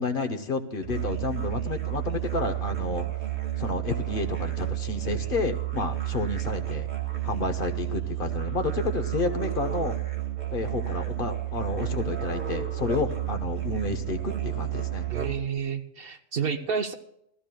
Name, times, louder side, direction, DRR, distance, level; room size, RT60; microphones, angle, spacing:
voice 1, 0.0-3.1 3.6-6.9 7.2-10.0 10.5-15.0, left 4 dB, 50° left, 6 dB, 0.9 m, -30 dB
Musical instrument, 0.8-15.6, right 14 dB, 80° right, 1.9 m, -31 dB
voice 2, 15.1-16.9, right 6 dB, 60° right, 7 dB, 0.8 m, -30 dB
19.0 x 14.0 x 2.2 m, 0.80 s
omnidirectional pair, 1.3 m